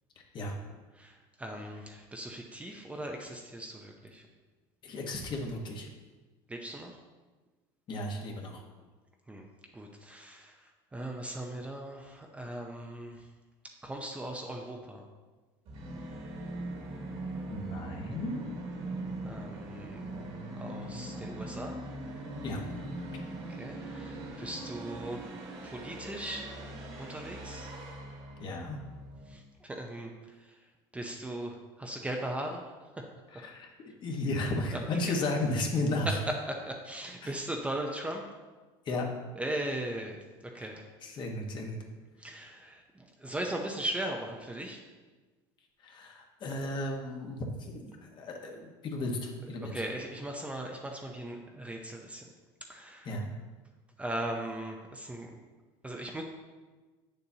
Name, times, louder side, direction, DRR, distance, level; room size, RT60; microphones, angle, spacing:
voice 1, 0.9-4.2 6.5-7.0 9.3-9.5 9.7-13.3 13.8-15.1 19.2-20.0 20.6-21.8 23.5-25.2 25.6-26.5 27.0-27.7 29.3-30.6 30.9-32.6 32.9-33.0 34.7-34.8 36.5-38.2 39.4-40.9 42.2-44.8 49.7-52.3 52.7-53.1 54.0-55.3 55.8-56.2, right 1 dB, 10° right, 1 dB, 0.6 m, -39 dB
voice 2, 4.8-5.9 7.9-8.6 17.5-18.6 22.4-22.7 28.4-28.8 33.3-36.2 37.2-37.3 38.8-39.1 41.0-41.8 45.8-49.8 53.0-53.2, left 2 dB, 40° left, 1 dB, 1.3 m, -34 dB
Musical instrument, 15.6-29.4, right 1 dB, 55° right, 1.7 m, -41 dB
8.2 x 6.8 x 2.8 m, 1.3 s
supercardioid pair, 120°, 12 cm